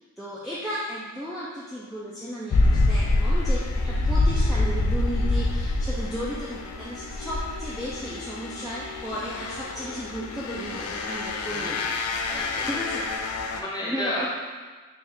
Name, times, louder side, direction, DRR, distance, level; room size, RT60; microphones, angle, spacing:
voice 1, 0.2-3.6 4.1-11.8 12.7-13.0 13.8-14.3, equal, ahead, -10 dB, 0.3 m, -34 dB
sound 1, 2.5-13.6, left 2 dB, 85° left, 0.4 m, -26 dB
voice 2, 3.8-4.2 11.4-11.9 12.3-12.8 13.5-14.3, left 1 dB, 20° left, -6 dB, 0.7 m, -33 dB
3.4 x 2.4 x 4.2 m, 1.4 s
head